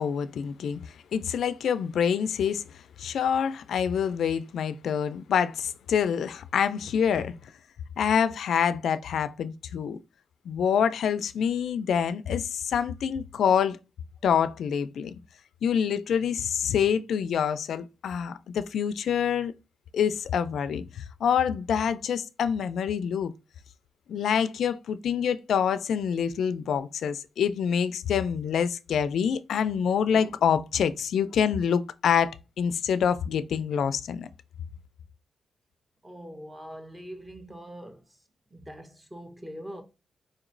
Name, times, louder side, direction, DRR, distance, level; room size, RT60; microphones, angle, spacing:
voice 1, 0.0-7.5 8.0-10.0 10.5-13.8 14.2-15.1 15.6-19.5 19.9-23.3 24.1-34.3, left 7 dB, 80° left, 0.3 m, -26 dB
voice 2, 36.0-38.2 38.5-39.8, equal, 15° right, 0.8 m, -43 dB
4.2 x 2.9 x 2.5 m
wide cardioid pair, 145°, 0 cm